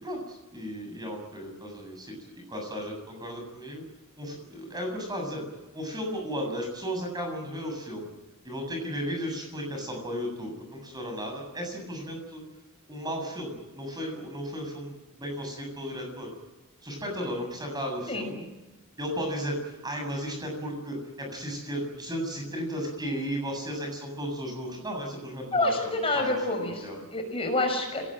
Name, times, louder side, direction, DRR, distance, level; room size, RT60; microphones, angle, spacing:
voice 1, 0.0-3.8 4.2-5.4 5.7-8.1 8.4-12.4 12.9-16.3 16.8-18.5 19.0-27.0, equal, 20° right, 3 dB, 7.5 m, -35 dB
voice 2, 25.5-26.8 27.1-28.1, left 2 dB, 25° left, 3 dB, 6.0 m, -27 dB
25.5 x 18.5 x 8.9 m, 1.1 s
head